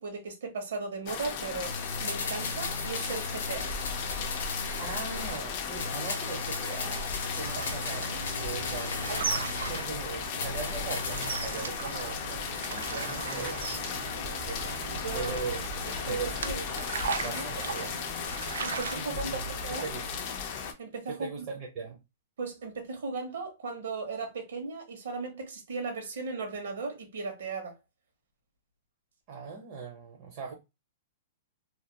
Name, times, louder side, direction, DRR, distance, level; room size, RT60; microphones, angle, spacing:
voice 1, 0.0-3.7 15.0-15.4 16.1-16.2 16.4-16.6 17.2-17.4 18.6-19.9 20.8-21.4 22.4-27.7, right 4 dB, 70° right, 0.8 m, -37 dB
sound 1, 1.1-20.7, left 6 dB, 30° left, 0.3 m, -36 dB
sound 2, 1.6-5.4 5.7-9.9 10.3-11.5 11.8-11.9, left 3 dB, 85° left, 0.6 m, -36 dB
voice 2, 4.8-15.6 16.1-16.7 17.2-18.0 18.9-20.2 21.1-22.0 29.3-30.5, right 5 dB, 30° right, 0.5 m, -40 dB
sound 3, 7.3-19.0, right 5 dB, 85° right, 0.3 m, -38 dB
2.3 x 2.2 x 2.7 m
hypercardioid pair, 180°, 0 cm